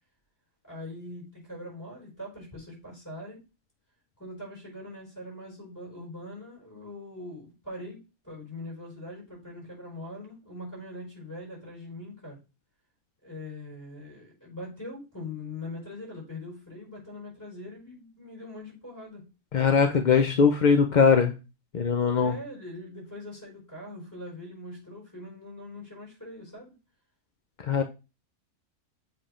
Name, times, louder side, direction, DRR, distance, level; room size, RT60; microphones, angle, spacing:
voice 1, 0.6-3.4 4.2-8.0 8.2-12.4 13.2-19.3 22.2-26.7, left 1 dB, 10° left, -4 dB, 5.0 m, -42 dB
voice 2, 19.5-21.3 21.7-22.4 27.6-27.8, left 6 dB, 50° left, 5 dB, 0.5 m, -21 dB
7.5 x 3.5 x 4.9 m, 0.28 s
omnidirectional pair, 1.5 m